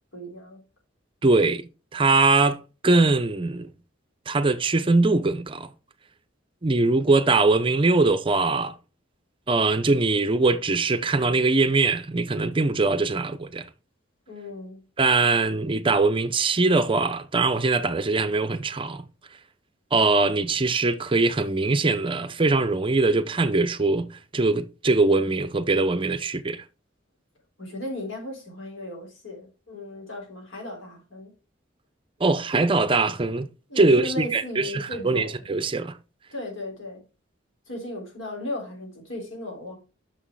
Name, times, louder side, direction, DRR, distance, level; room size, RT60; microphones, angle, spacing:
voice 1, 0.1-0.6 14.3-14.8 27.6-31.3 33.7-35.3 36.3-37.0 37.7-39.8, left 1 dB, 80° left, 3.7 m, -36 dB
voice 2, 1.2-1.6 1.9-3.7 4.3-5.7 6.6-8.7 9.5-13.7 15.0-19.0 19.9-24.1 24.3-26.6 32.2-33.5 33.8-36.0, right 3 dB, 25° right, 0.5 m, -22 dB
6.3 x 6.2 x 4.6 m
head